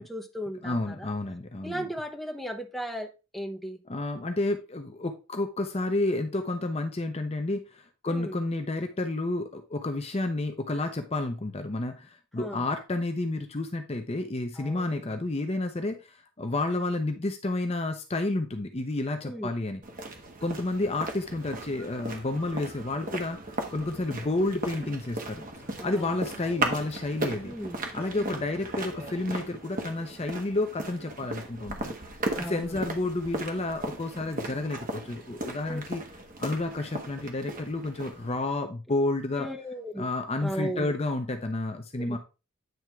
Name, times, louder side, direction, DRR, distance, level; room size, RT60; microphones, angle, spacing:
voice 1, 0.0-1.1 1.6-3.8 8.1-8.4 12.4-12.6 14.6-15.1 19.2-19.5 25.8-26.2 26.5-26.7 27.4-27.8 28.1-28.4 32.3-32.8 35.6-35.8 39.4-40.1 40.4-41.0 42.0-42.2, equal, ahead, 0.9 m, -36 dB
voice 2, 0.6-1.9 3.9-19.8 20.4-23.4 23.7-25.4 25.8-27.5 27.9-31.9 32.5-36.0 36.4-39.5 40.0-42.2, left 2 dB, 30° left, 0.6 m, -30 dB
sound 1, 19.8-38.4, right 2 dB, 40° right, 1.3 m, -37 dB
sound 2, 20.5-29.2, equal, 90° right, 4.7 m, -54 dB
9.1 x 3.5 x 4.5 m
head